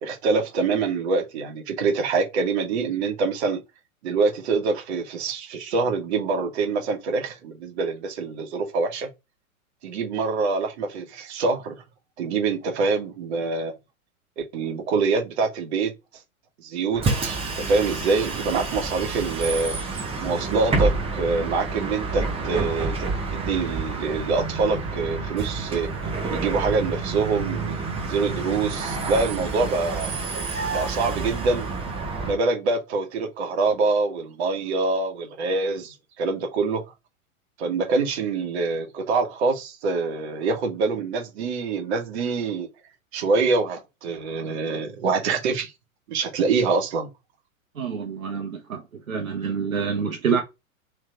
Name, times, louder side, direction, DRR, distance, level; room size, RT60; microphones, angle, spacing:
voice 1, 0.0-3.6 4.0-9.1 9.8-11.8 12.2-13.7 14.4-15.9 16.6-19.7 20.2-23.0 23.3-25.9 26.3-30.1 30.7-31.7 32.2-36.8 37.6-42.7 43.1-45.7 46.1-47.1, right 4 dB, 50° right, 1.3 m, -25 dB
Bus, 16.9-32.4, right 3 dB, 15° right, 1.0 m, -29 dB
voice 2, 47.7-50.4, right 6 dB, 70° right, 1.1 m, -27 dB
3.4 x 3.2 x 3.8 m
figure-of-eight pair, 100°, 42 cm